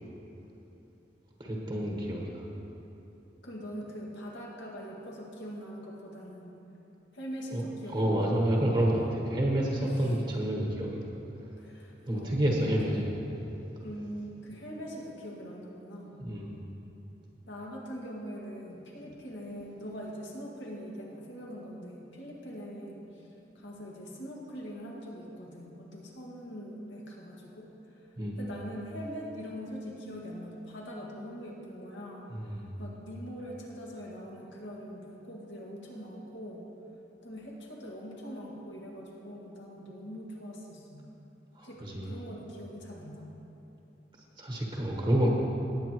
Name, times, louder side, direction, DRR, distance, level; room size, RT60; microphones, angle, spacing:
voice 1, 1.4-2.4 7.5-7.6 7.9-11.1 11.4-11.5 12.1-13.1 13.4-13.5 16.2-16.6 28.2-28.4 32.3-32.7 41.5-42.1 44.4-45.3, right 1 dB, 30° right, -2 dB, 1.2 m, -29 dB
voice 2, 3.4-6.5 7.1-8.5 9.7-10.2 11.6-12.4 12.9-13.2 13.8-16.1 17.5-23.3 23.5-36.7 37.2-41.0 41.6-43.3, equal, 85° left, -3 dB, 1.9 m, -42 dB
18.5 x 8.4 x 3.0 m, 2.9 s
head